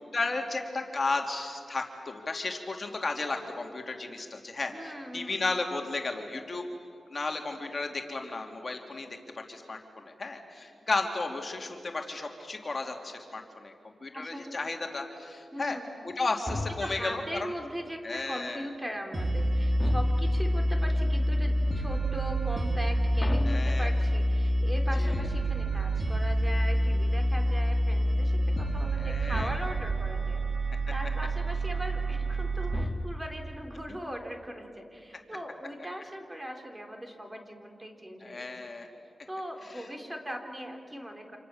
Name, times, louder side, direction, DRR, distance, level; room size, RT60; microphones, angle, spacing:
voice 1, 0.1-6.6 7.1-9.2 9.5-9.8 10.0-15.8 16.0-17.5 18.0-18.7 23.5-23.9 25.0-25.2 29.0-29.5 33.7-33.8 38.2-38.9 39.8-39.9, left 3 dB, 45° left, 3 dB, 2.9 m, -34 dB
voice 2, 4.7-5.4 14.1-14.6 15.5-15.9 16.8-30.4 30.9-38.5 39.3-41.4, equal, 15° right, 4 dB, 4.0 m, -39 dB
sound 1, 16.5-17.2 19.8-20.6 23.2-24.4 29.3-30.0 32.7-33.5, left 2 dB, 25° left, 2.0 m, -36 dB
sound 2, 19.1-32.9, equal, 30° right, 3.5 m, -27 dB
28.0 x 27.0 x 7.2 m, 2.4 s
cardioid pair, 50°, 0 cm